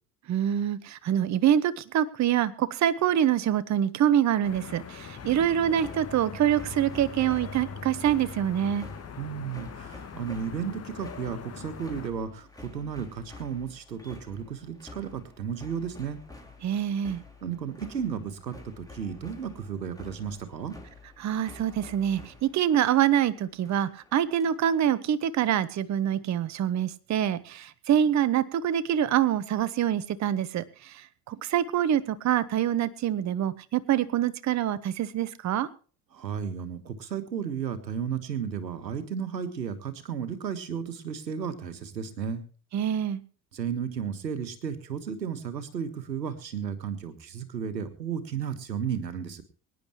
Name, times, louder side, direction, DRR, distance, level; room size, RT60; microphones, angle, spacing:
voice 1, 0.3-8.9 16.6-17.2 21.2-35.7 42.7-43.2, right 10 dB, 35° right, 16 dB, 1.0 m, -25 dB
sound 1, 4.4-12.1, left 6 dB, 30° left, 1.7 m, -41 dB
sound 2, 5.2-24.8, left 3 dB, 5° left, 4.0 m, -49 dB
voice 2, 9.2-16.2 17.4-20.7 36.1-42.4 43.5-49.4, right 7 dB, 80° right, 11 dB, 1.5 m, -34 dB
24.0 x 10.0 x 3.1 m, 0.40 s
figure-of-eight pair, 60°, 50 cm